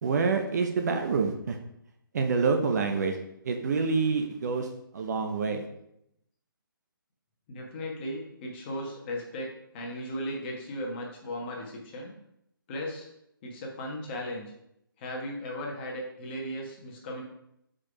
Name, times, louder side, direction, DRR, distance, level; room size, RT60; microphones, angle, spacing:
voice 1, 0.0-1.6 2.1-3.2 3.4-4.7 4.9-5.6, right 4 dB, 50° right, 4 dB, 0.8 m, -27 dB
voice 2, 7.5-12.1 12.7-13.1 13.4-14.5 15.0-17.2, equal, 25° left, -1 dB, 1.4 m, -36 dB
5.0 x 4.7 x 4.9 m, 0.78 s
hypercardioid pair, 155°, 12 cm